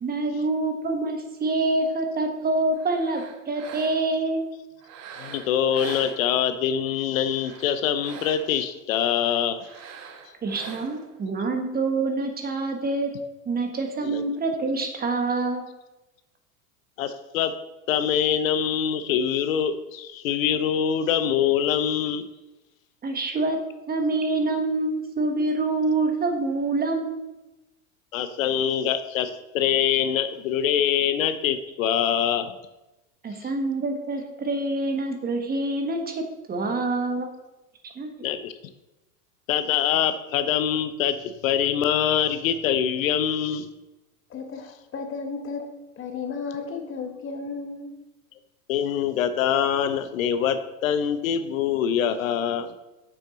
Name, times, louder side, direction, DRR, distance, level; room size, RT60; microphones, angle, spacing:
voice 1, 0.0-4.4 10.4-13.1 13.4-15.7 23.0-23.6 23.9-27.3 33.2-36.2 36.5-37.3 37.8-38.1, right 2 dB, 20° right, 4 dB, 1.2 m, -26 dB
sound 1, 2.7-4.2 4.8-6.7 7.2-8.7 9.6-11.2, right 6 dB, 40° right, 1.1 m, -43 dB
voice 2, 5.2-9.7 14.0-14.2 17.0-17.6 17.9-22.2 28.1-32.5 33.4-33.5 38.2-38.5 39.5-43.7 48.7-52.7, left 9 dB, 70° left, 11 dB, 0.7 m, -24 dB
voice 3, 44.3-48.0, left 4 dB, 30° left, 4 dB, 1.3 m, -34 dB
7.0 x 6.2 x 3.9 m, 1.0 s
hypercardioid pair, 95°, 42 cm